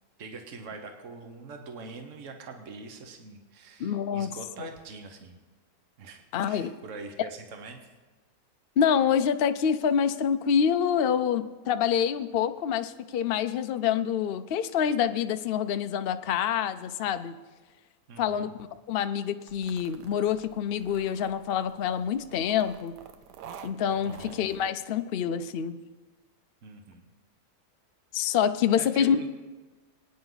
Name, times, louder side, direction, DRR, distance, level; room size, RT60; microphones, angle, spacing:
voice 1, 0.2-5.4 6.0-7.9 18.1-18.6 24.0-24.4 26.6-27.1 28.7-29.3, right 4 dB, 50° right, 5 dB, 1.5 m, -44 dB
voice 2, 3.8-4.3 4.6-4.7 6.3-6.7 8.8-17.3 18.2-18.5 18.9-23.0 23.6-25.8 28.1-29.2, left 8 dB, 85° left, 9 dB, 0.5 m, -26 dB
sound 1, 19.5-24.7, right 8 dB, 80° right, 1.3 m, -49 dB
22.5 x 9.6 x 4.0 m, 1.3 s
omnidirectional pair, 1.8 m